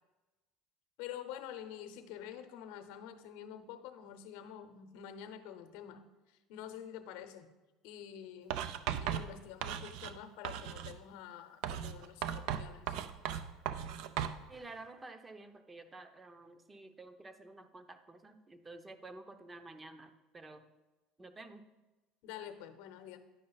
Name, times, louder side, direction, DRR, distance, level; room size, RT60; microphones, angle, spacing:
voice 1, 1.0-6.0 6.5-7.5 7.8-8.7 9.0-12.9 22.2-23.2, left 9 dB, 75° left, 9 dB, 0.8 m, -47 dB
Writing, 8.5-10.2 10.4-11.0 11.6-14.4, right 9 dB, 70° right, 0.4 m, -37 dB
voice 2, 14.5-20.6 21.2-21.6, right 2 dB, 20° right, 8 dB, 0.7 m, -51 dB
10.0 x 5.1 x 4.0 m, 1.1 s
supercardioid pair, 95°, 0 cm